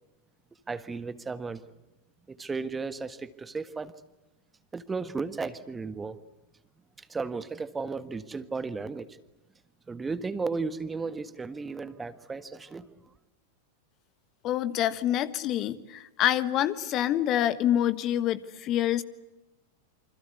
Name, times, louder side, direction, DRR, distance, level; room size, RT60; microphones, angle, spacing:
voice 1, 0.7-1.6 2.3-3.9 4.7-6.2 7.0-9.1 9.9-12.9, right 4 dB, 15° right, 13 dB, 1.5 m, -34 dB
voice 2, 14.4-19.0, left 11 dB, 35° left, 14 dB, 1.4 m, -26 dB
28.5 x 25.5 x 8.2 m, 0.98 s
figure-of-eight pair, 90°, 0 cm